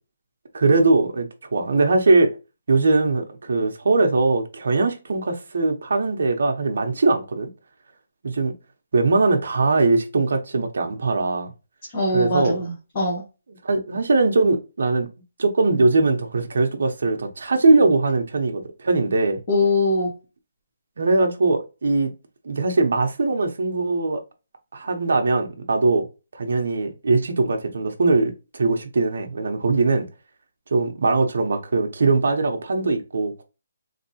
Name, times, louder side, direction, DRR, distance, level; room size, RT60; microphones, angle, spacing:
voice 1, 0.5-2.3 2.7-7.5 8.2-8.5 8.9-11.5 12.1-12.6 13.6-15.1 15.4-19.4 21.0-22.1 22.4-24.2 24.7-26.1 26.3-30.1 30.7-33.4, right 3 dB, 60° right, 0.8 m, -21 dB
voice 2, 11.9-13.2 19.5-20.1, left 2 dB, 25° left, 1.1 m, -22 dB
3.6 x 2.9 x 2.7 m
hypercardioid pair, 175°, 0 cm